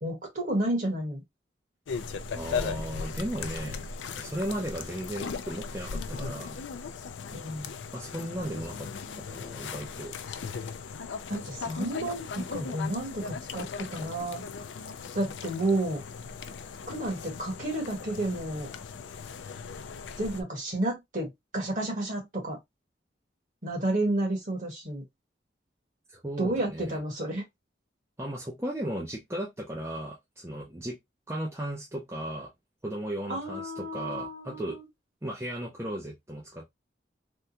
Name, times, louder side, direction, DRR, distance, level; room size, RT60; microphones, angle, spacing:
voice 1, 0.0-1.2 7.3-7.7 11.3-14.4 15.1-16.0 16.9-18.7 20.2-22.6 23.6-25.0 26.4-27.4 33.3-34.8, right 1 dB, 45° right, 1.6 m, -31 dB
sound 1, 1.9-20.4, left 5 dB, 90° left, 0.4 m, -38 dB
voice 2, 2.3-3.9 4.2-6.6 7.9-8.9 9.2-10.1 26.1-27.0 28.2-31.0 31.3-32.5 32.8-34.8 35.2-36.6, right 1 dB, 15° right, 0.6 m, -36 dB
3.5 x 2.3 x 2.8 m
head